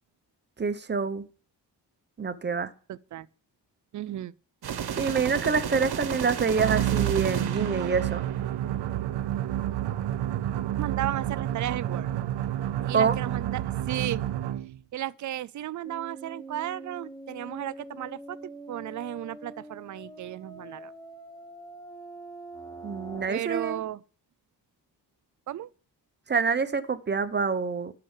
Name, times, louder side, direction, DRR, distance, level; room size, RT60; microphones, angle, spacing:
voice 1, 0.6-1.2 2.2-2.7 5.0-8.3 12.9-13.2 22.8-23.8 26.3-27.9, right 5 dB, 25° right, 0.9 m, -26 dB
voice 2, 2.9-3.3 3.9-4.3 10.8-12.1 12.9-14.3 14.9-20.9 23.3-24.0 25.5-25.7, right 12 dB, 45° right, 0.5 m, -34 dB
sound 1, 4.6-8.7, right 8 dB, 65° right, 1.2 m, -33 dB
sound 2, 6.5-14.8, right 12 dB, 80° right, 0.7 m, -29 dB
sound 3, 15.8-23.3, right 2 dB, 10° left, 1.8 m, -44 dB
12.0 x 6.9 x 7.2 m
wide cardioid pair, 160°, 42 cm